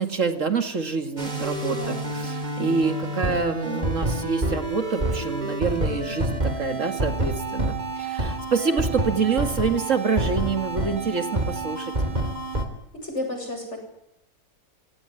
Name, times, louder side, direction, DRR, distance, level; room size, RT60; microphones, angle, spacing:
voice 1, 0.0-11.9, right 5 dB, 55° right, 7 dB, 2.3 m, -27 dB
sound 1, 1.2-12.7, right 2 dB, 30° right, 3.2 m, -28 dB
voice 2, 1.7-2.2 13.0-13.8, left 1 dB, 50° left, 3 dB, 7.9 m, -32 dB
29.0 x 17.5 x 9.9 m, 0.83 s
omnidirectional pair, 1.6 m